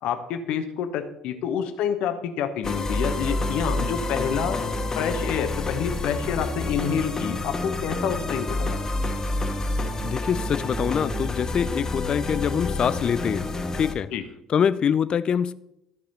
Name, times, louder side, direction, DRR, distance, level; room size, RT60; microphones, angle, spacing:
voice 1, 0.0-8.8 14.1-14.2, left 8 dB, 65° left, 1.1 m, -28 dB
sound 1, 2.6-13.9, left 2 dB, 30° left, 1.3 m, -28 dB
voice 2, 10.0-14.1 14.5-15.5, left 7 dB, 45° left, 0.5 m, -24 dB
13.0 x 4.8 x 5.4 m
hypercardioid pair, 55°, 2 cm